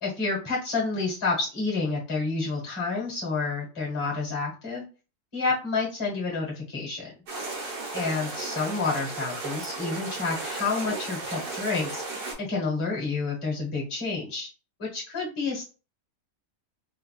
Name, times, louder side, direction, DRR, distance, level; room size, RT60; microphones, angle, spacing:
voice 1, 0.0-4.8 5.3-7.1 7.9-14.5 14.8-15.6, left 4 dB, 20° left, -2 dB, 1.1 m, -29 dB
sound 1, 7.3-12.3, right 3 dB, 75° right, 1.7 m, -34 dB
3.4 x 2.4 x 2.3 m, 0.34 s
omnidirectional pair, 1.7 m